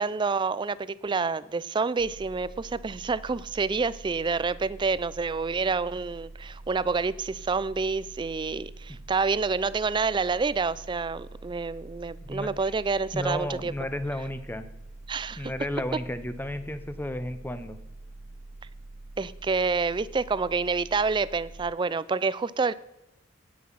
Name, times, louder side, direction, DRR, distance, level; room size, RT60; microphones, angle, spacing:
voice 1, 0.0-13.7 15.1-15.5 19.2-22.7, right 4 dB, 20° right, 18 dB, 0.3 m, -28 dB
sound 1, 2.0-21.7, right 2 dB, 50° right, 0.7 m, -45 dB
voice 2, 13.1-14.7 15.4-17.8, left 1 dB, 10° left, 11 dB, 0.7 m, -33 dB
9.8 x 9.6 x 5.6 m, 0.91 s
head